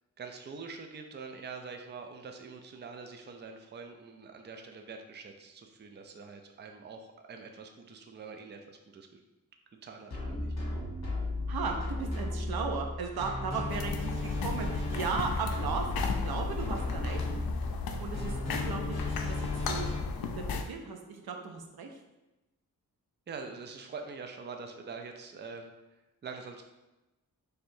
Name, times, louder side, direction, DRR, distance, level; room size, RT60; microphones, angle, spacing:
voice 1, 0.2-9.1 9.8-10.5 23.3-26.6, right 4 dB, 30° right, 5 dB, 0.4 m, -45 dB
sound 1, 10.1-20.0, left 2 dB, 45° left, 1.2 m, -35 dB
voice 2, 11.5-17.3 18.0-19.4 19.7-19.9 20.2-22.0, right 5 dB, 85° right, 3 dB, 0.6 m, -36 dB
sound 2, 13.7-20.6, left 4 dB, 75° left, 0.5 m, -35 dB
4.5 x 3.2 x 2.6 m, 1.0 s
wide cardioid pair, 100°, 36 cm